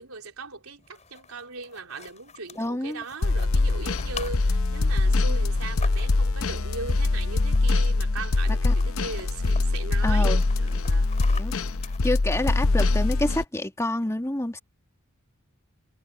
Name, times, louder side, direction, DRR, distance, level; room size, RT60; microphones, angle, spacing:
voice 1, 0.0-11.1 11.5-11.6, right 3 dB, 80° right, 4.0 m, -38 dB
sound 1, 0.8-6.4 7.5-7.9 8.2-8.3 8.6-9.6 10.1-12.7, left 5 dB, 35° left, 5.9 m, -45 dB
voice 2, 2.6-3.0 8.6-8.7 10.0-10.4 11.3-11.5 12.0-14.6, left 1 dB, 15° left, 1.8 m, -28 dB
sound 2, 3.2-13.4, left 2 dB, 70° left, 0.7 m, -23 dB
head